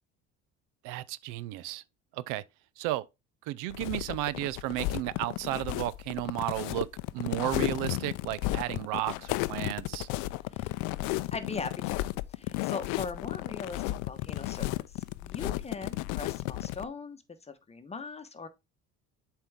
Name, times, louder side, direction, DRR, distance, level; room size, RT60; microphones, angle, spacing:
voice 1, 0.8-1.8 2.1-2.4 2.8-3.0 3.5-6.9 7.1-10.1, right 16 dB, 80° right, 0.5 m, -33 dB
sound 1, 3.7-16.8, left 18 dB, 80° left, 0.5 m, -33 dB
voice 2, 10.5-12.0 12.3-18.5, left 4 dB, 20° left, 1.0 m, -41 dB
7.5 x 4.5 x 3.5 m
supercardioid pair, 95°, 30 cm